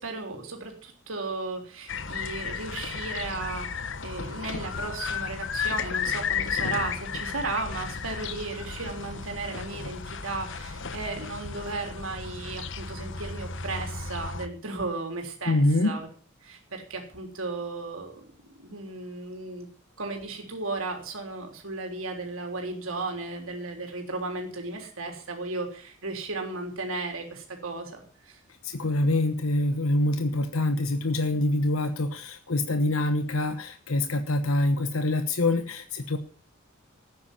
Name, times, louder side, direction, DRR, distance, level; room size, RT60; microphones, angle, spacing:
voice 1, 0.0-16.1 16.4-19.7 20.0-28.4, right 3 dB, 75° right, 3 dB, 3.6 m, -35 dB
sound 1, 1.9-14.5, left 6 dB, 65° left, 1.2 m, -34 dB
voice 2, 15.5-16.0 28.6-36.2, left 2 dB, 85° left, 9 dB, 1.2 m, -25 dB
14.0 x 9.5 x 7.3 m, 0.43 s
head